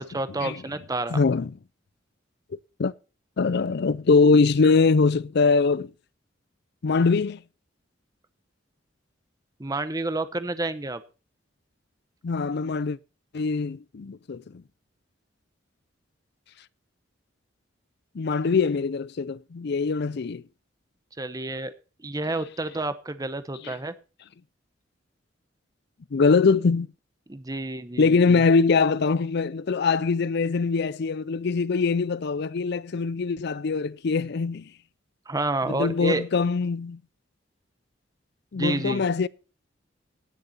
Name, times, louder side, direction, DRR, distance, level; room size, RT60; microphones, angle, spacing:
voice 1, 0.0-1.2 9.6-11.0 21.2-21.7 22.0-23.9 27.3-28.4 35.3-36.3 38.5-39.0, right 2 dB, 20° right, 0.8 m, -29 dB
voice 2, 1.1-1.6 2.8-2.9 3.4-5.9 6.8-7.4 12.2-13.0 13.3-14.6 18.1-20.4 23.6-23.7 26.1-26.9 28.0-34.7 35.7-37.0 38.5-39.3, left 4 dB, 60° left, 0.5 m, -22 dB
18.0 x 6.7 x 4.2 m
head